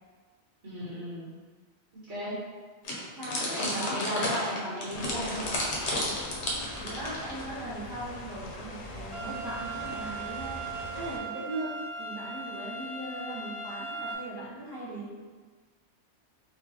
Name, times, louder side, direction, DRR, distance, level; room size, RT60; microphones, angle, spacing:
voice 1, 0.6-1.3 1.9-2.4 3.4-5.6, equal, 70° right, -9 dB, 1.7 m, -35 dB
sound 1, 2.8-7.6, left 1 dB, 80° left, 1.1 m, -32 dB
voice 2, 3.1-4.0 6.8-10.6 10.9-15.3, right 1 dB, 20° right, -8 dB, 1.0 m, -39 dB
sound 2, 4.9-11.2, left 1 dB, 55° left, 0.5 m, -43 dB
sound 3, 9.1-14.1, right 3 dB, 40° right, 0.5 m, -38 dB
4.0 x 2.7 x 2.8 m, 1.4 s
omnidirectional pair, 1.2 m